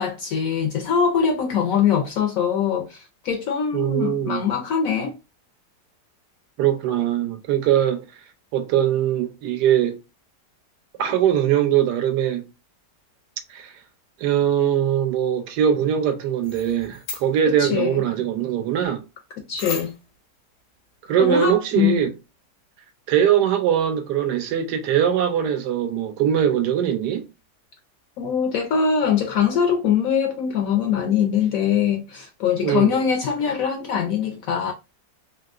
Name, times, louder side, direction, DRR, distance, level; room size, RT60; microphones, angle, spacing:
voice 1, 0.0-5.1 17.5-18.0 19.5-19.9 21.2-22.1 28.2-34.7, left 7 dB, 70° left, 0.8 m, -22 dB
voice 2, 3.7-4.4 6.6-8.0 8.5-10.0 11.0-12.4 13.5-13.7 14.2-19.0 21.0-22.1 23.1-27.3 32.6-33.0, right 10 dB, 75° right, 1.2 m, -21 dB
sound 1, 16.4-17.4 19.6-20.2, left 6 dB, 85° left, 1.5 m, -34 dB
3.4 x 2.7 x 2.4 m
omnidirectional pair, 1.8 m